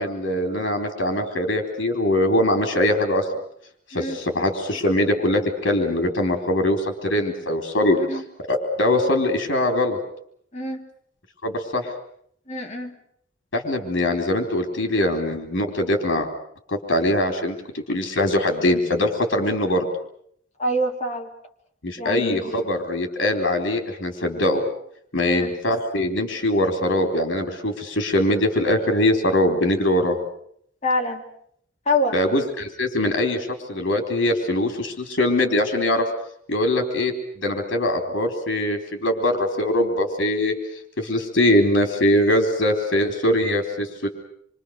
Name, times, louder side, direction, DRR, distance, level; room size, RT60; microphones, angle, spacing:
voice 1, 0.0-3.3 3.9-8.0 8.5-10.0 11.4-11.9 13.5-16.3 16.7-19.9 21.8-24.6 25.1-30.2 32.1-36.0 36.5-40.5 41.0-44.1, left 1 dB, 70° left, 4 dB, 3.9 m, -22 dB
voice 2, 10.5-10.9 12.5-12.9 20.6-21.3 22.0-22.6 25.2-25.5 30.8-31.3 31.8-32.2, left 1 dB, 35° left, 0 dB, 3.4 m, -26 dB
27.0 x 25.0 x 6.6 m, 0.67 s
head